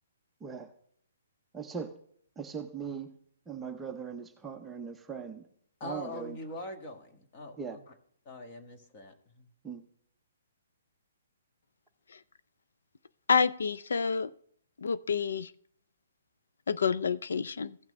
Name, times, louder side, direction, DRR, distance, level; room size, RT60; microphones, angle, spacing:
voice 1, 0.4-0.7 1.5-1.9 2.4-3.2 3.5-5.4 5.8-6.4 7.6-7.8 9.6-9.8, right 6 dB, 5° right, 0.6 m, -39 dB
voice 2, 5.8-7.8 8.2-9.5, left 1 dB, 25° left, 1.5 m, -43 dB
voice 3, 13.3-14.3 14.8-15.5 16.7-17.8, left 5 dB, 80° left, 0.4 m, -28 dB
15.5 x 6.0 x 3.2 m
hypercardioid pair, 165°, 0 cm